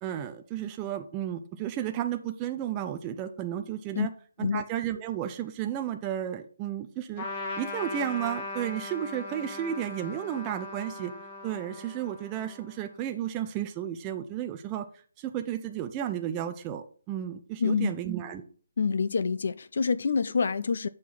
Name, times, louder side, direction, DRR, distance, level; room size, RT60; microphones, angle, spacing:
voice 1, 0.0-4.1 4.4-7.3 7.6-11.1 11.4-14.9 15.2-18.4, right 10 dB, 15° right, 0.4 m, -33 dB
Trumpet, 7.2-13.0, left 2 dB, 25° left, 1.2 m, -39 dB
voice 2, 17.6-18.0 18.8-20.9, left 5 dB, 60° left, 0.4 m, -27 dB
7.2 x 4.8 x 4.0 m
hypercardioid pair, 170°, 0 cm